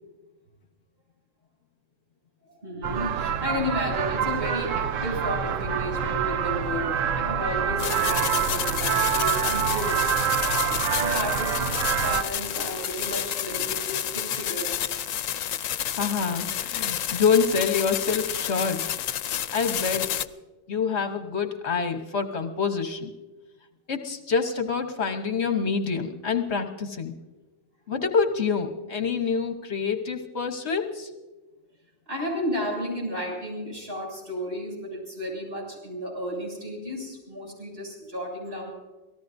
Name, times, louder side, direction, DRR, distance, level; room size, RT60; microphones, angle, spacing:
voice 1, 2.6-10.0 10.4-15.1 15.9-16.0 20.9-21.0 32.1-38.7, equal, 50° right, -2 dB, 7.6 m, -33 dB
sound 1, 2.8-12.2, right 8 dB, 90° right, 1.2 m, -26 dB
sound 2, 7.8-20.3, left 10 dB, 85° left, 1.1 m, -30 dB
voice 2, 15.9-18.8 19.5-20.2 20.7-23.1 23.9-27.1 27.9-31.1, left 5 dB, 60° left, 6 dB, 1.3 m, -26 dB
28.0 x 18.0 x 2.7 m, 1.2 s
omnidirectional pair, 1.3 m